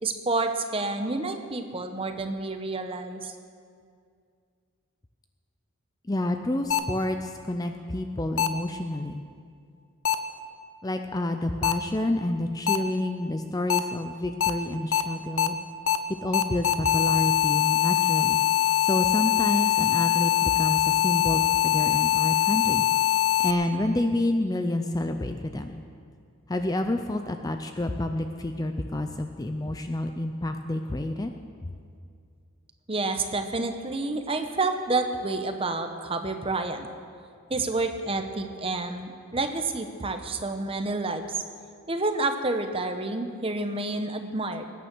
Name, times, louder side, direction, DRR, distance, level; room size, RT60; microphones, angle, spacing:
voice 1, 0.0-3.3 32.9-36.9 37.5-41.4 41.9-44.7, right 3 dB, 25° right, 6 dB, 0.9 m, -29 dB
voice 2, 6.1-9.2 10.8-15.6 16.2-18.4 18.8-25.8 26.5-31.3, left 1 dB, 15° left, 6 dB, 0.4 m, -29 dB
sound 1, 6.7-6.8 8.4-8.5 10.1-10.2 11.6-11.7 12.7-12.8 13.7-13.8 14.4-14.5 14.9-15.0 15.4-15.5 15.9-16.0 16.3-23.5, left 13 dB, 75° left, 0.8 m, -22 dB
20.5 x 9.3 x 6.1 m, 2.2 s
head